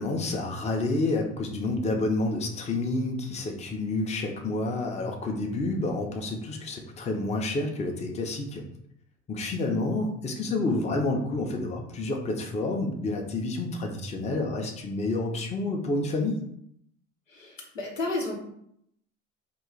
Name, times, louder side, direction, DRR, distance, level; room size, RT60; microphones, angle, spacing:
voice 1, 0.0-8.6 9.3-16.4, left 2 dB, 20° left, 2 dB, 0.6 m, -29 dB
voice 2, 17.3-18.4, left 2 dB, 90° left, -1 dB, 0.8 m, -32 dB
3.0 x 2.4 x 3.7 m, 0.72 s
figure-of-eight pair, 70°, 37 cm